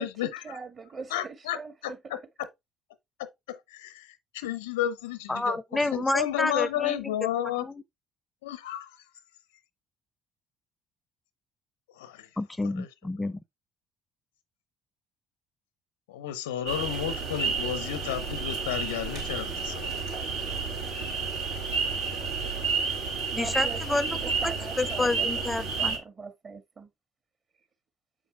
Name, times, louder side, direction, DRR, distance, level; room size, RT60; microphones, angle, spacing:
voice 1, 0.4-2.0 23.3-25.3 25.6-26.9, right 4 dB, 40° right, 1.8 m, -41 dB
voice 2, 1.1-1.6 3.2-3.9 4.3-5.6 5.9-7.7 8.4-8.9 12.0-12.3 12.8-12.9 16.1-19.9, left 11 dB, 80° left, 0.7 m, -32 dB
voice 3, 5.3-7.3 7.6-7.8 12.4-13.4 23.4-24.2 24.4-26.0, left 2 dB, 15° left, 0.6 m, -29 dB
sound 1, 16.6-26.0, right 5 dB, 75° right, 2.0 m, -31 dB
7.1 x 5.1 x 3.3 m
hypercardioid pair, 55°, 0 cm